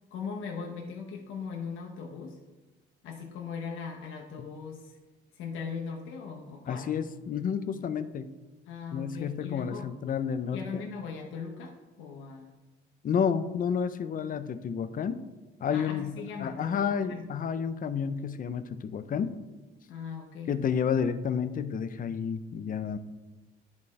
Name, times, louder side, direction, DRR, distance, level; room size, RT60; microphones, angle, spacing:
voice 1, 0.1-2.4 3.0-5.0 5.3-6.9 8.7-9.9 10.5-12.5 15.7-17.2 19.9-20.5, left 5 dB, 90° left, 0 dB, 0.8 m, -39 dB
voice 2, 6.7-8.3 8.9-10.9 13.0-15.2 15.6-19.3 20.5-23.0, left 7 dB, 45° left, 11 dB, 0.5 m, -30 dB
10.5 x 4.1 x 3.2 m, 1.2 s
cardioid pair, 90°, 20 cm